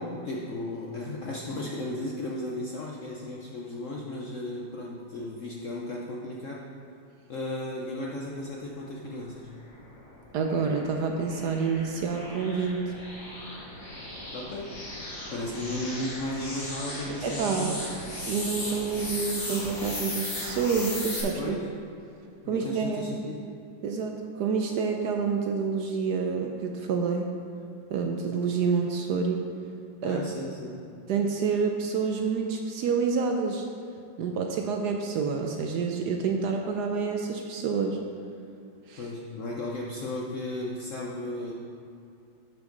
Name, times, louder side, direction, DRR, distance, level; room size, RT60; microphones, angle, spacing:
voice 1, 0.0-6.6 7.3-9.5 14.3-14.7 15.3-18.0 21.4-21.7 22.4-23.4 30.0-30.8 39.0-41.5, left 1 dB, 70° left, -2 dB, 0.7 m, -35 dB
sound 1, 9.7-21.2, left 1 dB, 45° left, 2.1 m, -37 dB
voice 2, 10.3-12.9 17.2-17.7 18.3-21.6 22.5-23.3 23.8-27.3 27.9-29.4 30.0-30.2 31.1-33.7 34.2-38.0 38.9-39.0, right 5 dB, 70° right, 3 dB, 1.0 m, -28 dB
10.5 x 5.8 x 3.9 m, 2.5 s
omnidirectional pair, 2.2 m